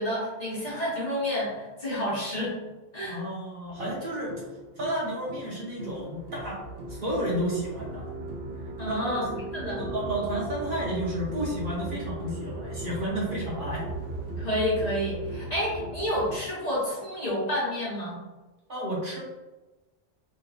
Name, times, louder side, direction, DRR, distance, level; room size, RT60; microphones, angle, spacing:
voice 1, 0.0-2.5 2.9-3.2 8.8-9.3 9.5-9.8 14.4-18.2, equal, 35° left, -7 dB, 1.1 m, -29 dB
voice 2, 3.1-4.4 4.8-6.6 6.9-8.1 8.9-9.2 9.6-13.8 18.7-19.2, right 1 dB, 50° right, -5 dB, 0.8 m, -32 dB
sound 1, 3.7-16.4, right 2 dB, 75° right, 0.9 m, -37 dB
3.3 x 3.0 x 2.3 m, 1.1 s
omnidirectional pair, 1.2 m